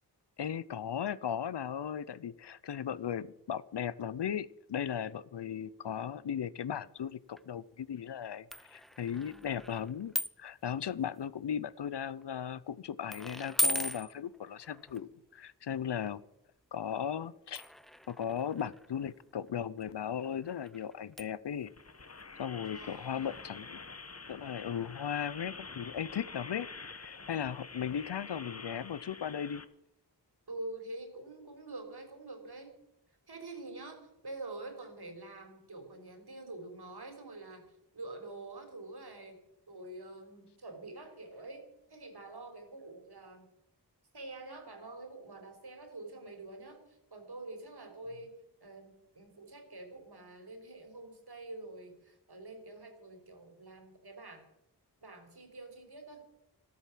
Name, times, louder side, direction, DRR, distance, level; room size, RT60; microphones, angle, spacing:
voice 1, 0.4-16.2 16.7-17.6 18.1-21.7 22.4-23.8 24.3-29.6, left 8 dB, 85° left, 19 dB, 0.7 m, -37 dB
sound 1, 7.0-7.1 7.3-7.4 8.5-10.5 10.9-11.3 11.9-12.2 13.1-15.0 16.1-16.2 17.5-23.1 23.3-23.4 23.8-23.9, equal, ahead, 0.7 m, -38 dB
voice 2, 9.1-9.5 22.7-23.5 30.5-32.8 33.3-39.4 39.7-43.5 44.1-54.4 55.0-56.2, right 2 dB, 70° right, 5 dB, 3.9 m, -47 dB
sound 2, 21.7-29.6, left 4 dB, 40° left, 1.2 m, -47 dB
13.5 x 13.0 x 7.5 m, 0.84 s
cardioid pair, 45°, 40 cm